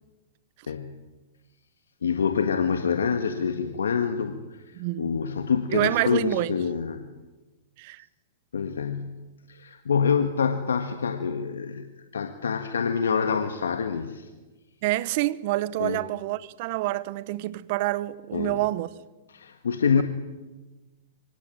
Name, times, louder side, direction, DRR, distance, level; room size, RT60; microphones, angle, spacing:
voice 1, 0.7-1.0 2.0-7.1 8.5-9.2 9.5-14.3 15.8-16.0 18.3-18.5 19.3-20.0, left 6 dB, 85° left, 1.7 m, -26 dB
voice 2, 4.8-5.1 5.7-6.5 7.8-8.0 14.8-18.9 20.0-20.1, right 17 dB, 55° right, 1.0 m, -27 dB
24.0 x 18.0 x 9.2 m
hypercardioid pair, 120°, 0 cm